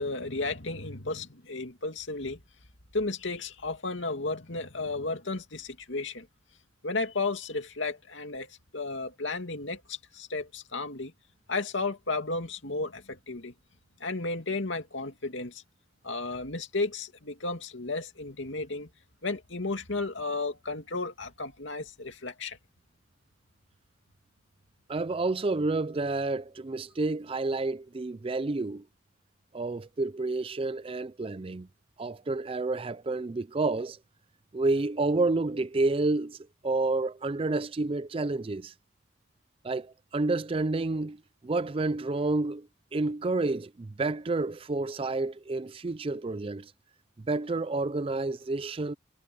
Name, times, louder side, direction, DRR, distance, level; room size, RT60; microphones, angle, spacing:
voice 1, 0.0-2.4 2.9-6.3 6.8-11.1 11.5-13.5 14.0-15.6 16.0-18.9 19.2-22.6, left 3 dB, 70° left, 2.5 m, -33 dB
voice 2, 24.9-28.8 29.5-31.7 32.0-34.0 34.5-38.7 39.6-46.7 47.3-48.9, right 3 dB, 30° right, 0.4 m, -29 dB
head